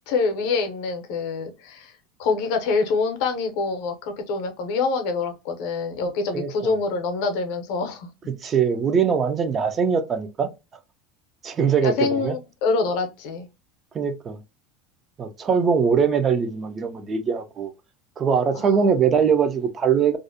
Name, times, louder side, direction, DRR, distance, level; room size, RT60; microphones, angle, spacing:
voice 1, 0.1-1.9 2.2-8.1 11.8-13.5 18.5-18.9, left 4 dB, 65° left, 0.6 m, -25 dB
voice 2, 6.3-6.7 8.3-10.5 11.4-12.4 13.9-14.4 15.2-17.7 18.2-20.2, right 6 dB, 25° right, 0.3 m, -22 dB
2.4 x 2.1 x 2.6 m
supercardioid pair, 140°, 0 cm